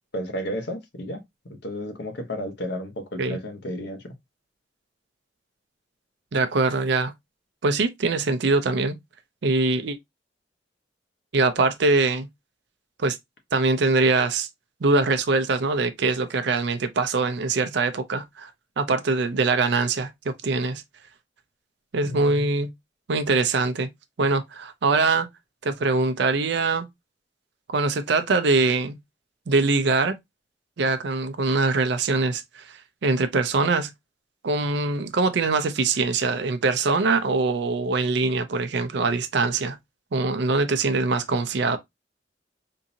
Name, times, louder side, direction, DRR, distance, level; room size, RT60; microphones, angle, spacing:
voice 1, 0.1-4.1 22.0-22.5, equal, 65° left, 0.9 m, -33 dB
voice 2, 6.3-7.1 7.6-8.9 9.4-10.0 11.3-12.3 13.0-13.2 13.5-14.5 14.8-18.5 18.8-20.8 21.9-22.7 23.1-23.9 24.2-25.3 25.6-26.9 27.7-29.0 29.5-30.2 30.8-33.9 34.4-39.8 40.1-41.8, right 3 dB, 65° right, 0.5 m, -23 dB
3.7 x 2.7 x 2.7 m
head